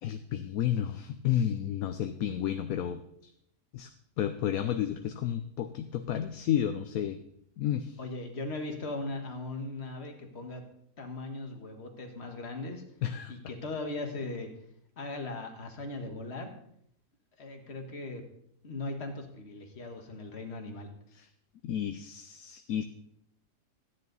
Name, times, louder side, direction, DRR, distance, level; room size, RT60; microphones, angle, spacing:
voice 1, 0.0-3.0 3.7-3.9 4.2-7.2 7.6-8.0 13.0-13.3 21.1-21.3 21.6-22.8, left 10 dB, 70° left, 8 dB, 1.0 m, -31 dB
voice 2, 8.0-10.6 11.0-12.8 13.3-14.5 15.0-16.5 17.4-18.2 18.6-20.9, left 2 dB, 40° left, 3 dB, 1.7 m, -38 dB
13.0 x 9.9 x 4.0 m, 0.71 s
omnidirectional pair, 1.7 m